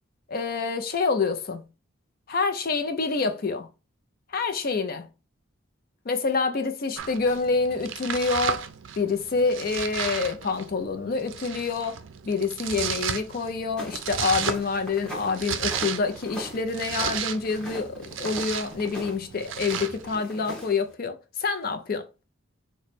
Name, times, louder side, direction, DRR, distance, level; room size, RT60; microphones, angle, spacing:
voice 1, 0.3-1.6 2.3-3.7 4.3-5.1 6.1-8.7 9.0-22.1, left 4 dB, 50° left, 0.5 m, -27 dB
Domestic sounds home sounds, 7.0-20.2, right 8 dB, 70° right, 0.4 m, -34 dB
sound 1, 13.8-20.9, equal, 5° left, 1.0 m, -40 dB
3.0 x 2.1 x 4.1 m
head